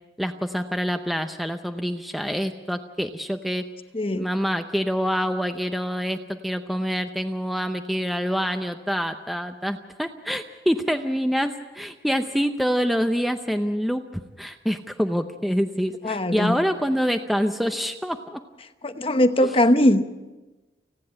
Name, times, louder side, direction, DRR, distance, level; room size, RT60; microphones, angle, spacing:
voice 1, 0.2-3.7 4.1-18.4 19.4-19.5, equal, ahead, 0.7 m, -26 dB
voice 2, 3.9-4.3 16.0-16.6 18.8-20.0, left 1 dB, 30° left, 0.9 m, -20 dB
30.0 x 10.0 x 8.7 m
head